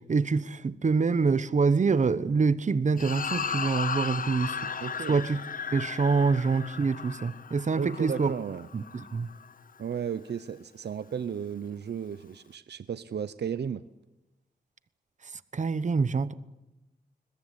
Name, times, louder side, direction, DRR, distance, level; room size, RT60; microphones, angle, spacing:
voice 1, 0.1-4.6 5.1-5.4 5.7-8.3 8.7-8.8 9.1-9.3 15.5-16.3, right 4 dB, 45° right, 16 dB, 1.0 m, -25 dB
sound 1, 3.0-9.5, left 6 dB, 55° left, 0.9 m, -36 dB
voice 2, 4.8-5.2 7.8-8.7 9.8-13.8, right 7 dB, 75° right, 14 dB, 0.8 m, -34 dB
21.5 x 21.5 x 9.8 m, 0.98 s
wide cardioid pair, 140°, 17 cm